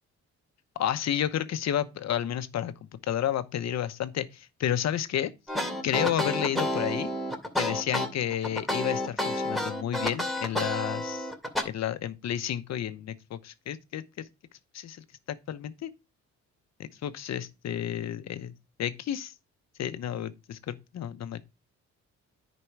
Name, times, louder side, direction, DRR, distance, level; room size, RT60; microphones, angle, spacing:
voice 1, 0.8-2.7 3.1-5.3 5.8-7.1 7.6-11.3 11.6-14.0 14.7-15.9 16.8-18.5 18.8-19.3 19.8-21.5, left 10 dB, 60° left, 0.9 m, -31 dB
sound 1, 5.5-11.6, left 1 dB, ahead, 2.5 m, -30 dB
9.8 x 5.2 x 4.6 m
cardioid pair, 90°, 30 cm